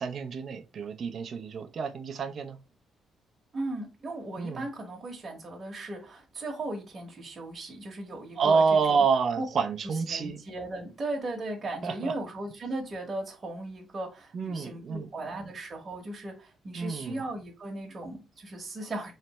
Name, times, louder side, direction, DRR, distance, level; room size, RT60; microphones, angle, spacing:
voice 1, 0.0-2.6 4.4-4.7 8.4-10.4 11.8-12.1 14.3-15.1 16.8-17.2, right 5 dB, 55° right, 0.6 m, -28 dB
voice 2, 3.5-9.0 9.3-9.4 9.8-19.1, right 2 dB, 35° right, 1.2 m, -37 dB
4.1 x 3.3 x 3.0 m
cardioid pair, 90°, 0 cm